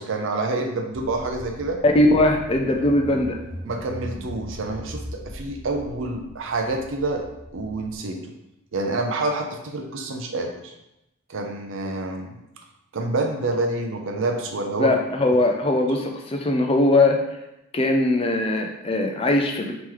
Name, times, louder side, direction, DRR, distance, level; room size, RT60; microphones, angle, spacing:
voice 1, 0.0-1.8 3.7-7.3 7.5-8.3 8.7-10.7 11.3-12.4 12.9-14.9, right 2 dB, 60° right, 3 dB, 0.5 m, -27 dB
Car / Engine, 0.9-8.0, equal, ahead, 0.9 m, -39 dB
voice 2, 1.8-3.4 14.8-17.2 17.7-19.7, left 2 dB, 25° left, 3 dB, 0.4 m, -20 dB
3.1 x 2.9 x 3.7 m, 0.89 s
head